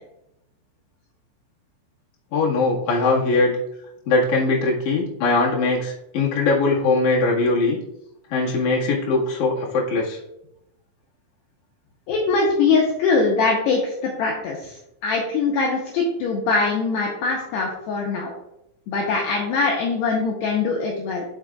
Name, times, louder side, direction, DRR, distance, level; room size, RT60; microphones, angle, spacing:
voice 1, 2.3-3.5 4.1-7.8 8.3-10.2, left 3 dB, 55° left, -4 dB, 2.3 m, -21 dB
voice 2, 12.1-14.8 15.0-18.3 18.9-21.2, left 4 dB, 75° left, -1 dB, 2.6 m, -22 dB
9.9 x 6.7 x 2.4 m, 0.84 s
omnidirectional pair, 5.7 m